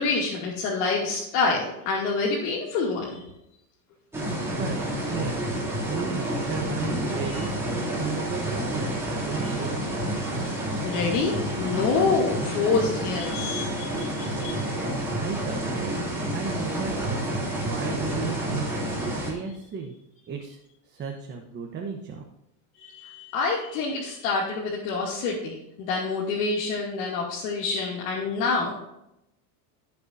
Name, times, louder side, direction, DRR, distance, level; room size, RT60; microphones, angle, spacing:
voice 1, 0.0-3.2 7.3-7.4 9.4-9.5 10.8-14.6 16.9-17.7 22.8-28.7, left 4 dB, 70° left, -4 dB, 2.7 m, -27 dB
sound 1, 4.1-19.3, right 1 dB, 5° right, 3.0 m, -29 dB
voice 2, 4.5-4.8 5.1-5.5 5.9-9.8 14.9-15.9 16.3-18.7 18.9-19.9 20.3-20.6 20.9-22.2, right 6 dB, 20° right, 1 dB, 1.1 m, -34 dB
16.5 x 7.0 x 2.7 m, 0.85 s
supercardioid pair, 150°, 48 cm